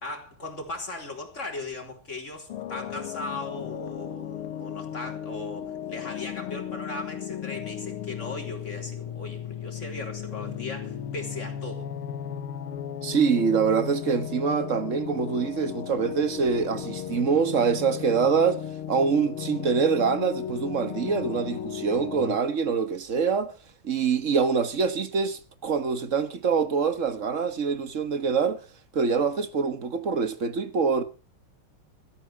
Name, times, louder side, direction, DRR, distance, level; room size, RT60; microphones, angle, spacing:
voice 1, 0.0-11.9, left 2 dB, 35° left, 4.0 m, -38 dB
sound 1, 2.5-22.4, left 10 dB, 80° left, 2.1 m, -35 dB
voice 2, 13.0-18.6 18.9-23.5 23.8-28.6 28.9-31.0, right 5 dB, 40° right, 1.5 m, -25 dB
16.0 x 14.0 x 4.6 m
omnidirectional pair, 2.4 m